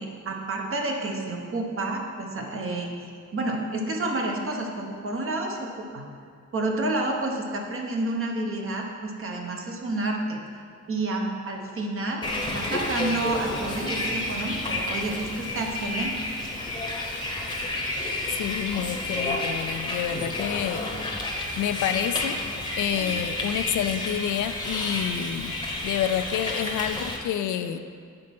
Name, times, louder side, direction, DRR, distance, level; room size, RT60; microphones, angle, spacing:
voice 1, 0.0-6.0 6.5-10.4 10.9-16.1, right 2 dB, 45° right, 1 dB, 1.0 m, -30 dB
Bus, 12.2-27.2, left 2 dB, 15° left, 0.9 m, -30 dB
voice 2, 18.4-20.9 21.6-22.4 22.8-25.5 25.8-27.8, left 10 dB, 80° left, 10 dB, 0.5 m, -28 dB
7.7 x 4.3 x 5.9 m, 2.2 s
cardioid pair, 135°, 30 cm